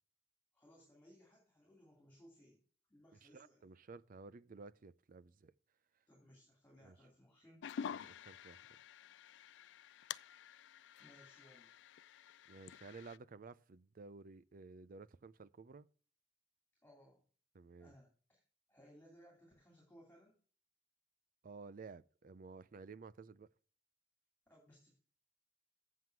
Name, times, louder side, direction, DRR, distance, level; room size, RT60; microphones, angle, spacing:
voice 1, 0.5-2.6 2.9-3.6 6.1-7.6 11.0-11.7 16.8-17.3 17.8-18.4 18.7-20.4 24.5-25.0, equal, 10° left, 2.8 m, -63 dB
voice 2, 3.2-5.5 6.8-7.0 7.8-8.7 12.5-15.9 17.5-17.9 21.4-23.5, right 4 dB, 50° right, 0.5 m, -54 dB
sound 1, 7.6-13.2, left 8 dB, 70° left, 0.3 m, -49 dB
7.8 x 7.5 x 4.6 m
head